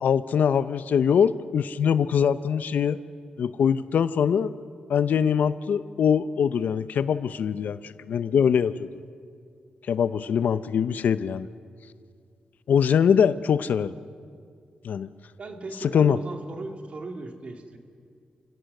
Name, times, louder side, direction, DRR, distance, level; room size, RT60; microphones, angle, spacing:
voice 1, 0.0-3.0 3.4-4.5 4.9-9.0 9.9-11.5 12.7-13.9 14.8-15.1 15.8-16.2, left 7 dB, 75° left, 14 dB, 0.6 m, -23 dB
voice 2, 15.4-17.8, right 3 dB, 45° right, 4 dB, 2.0 m, -37 dB
29.5 x 17.0 x 6.6 m, 2.3 s
wide cardioid pair, 120°, 3 cm